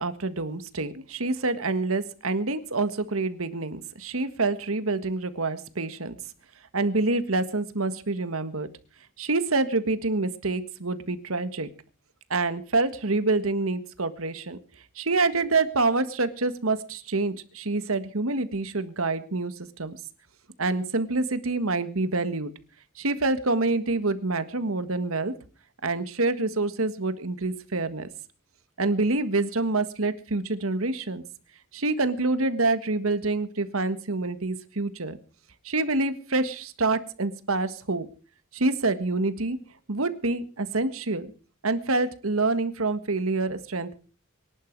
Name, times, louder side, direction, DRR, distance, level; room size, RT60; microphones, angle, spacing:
voice 1, 0.0-6.2 6.7-8.7 9.2-11.7 12.3-14.6 14.9-20.0 20.6-22.5 23.0-25.3 25.8-28.1 28.8-31.2 31.7-35.2 35.6-38.1 38.5-39.6 39.9-41.3 41.6-43.9, right 3 dB, 75° right, 12 dB, 1.6 m, -27 dB
24.0 x 11.5 x 4.6 m, 0.38 s
head